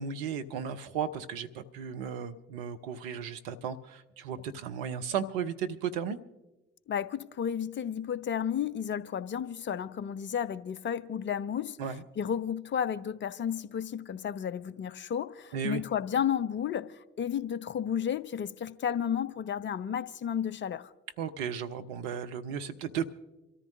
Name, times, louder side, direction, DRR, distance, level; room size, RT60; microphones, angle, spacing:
voice 1, 0.0-6.2 11.8-12.0 15.5-15.8 21.2-23.0, right 7 dB, 65° right, 0.8 m, -35 dB
voice 2, 6.9-11.8 12.2-20.9, left 8 dB, 40° left, 0.7 m, -32 dB
28.0 x 14.0 x 2.6 m
figure-of-eight pair, 45°, 31 cm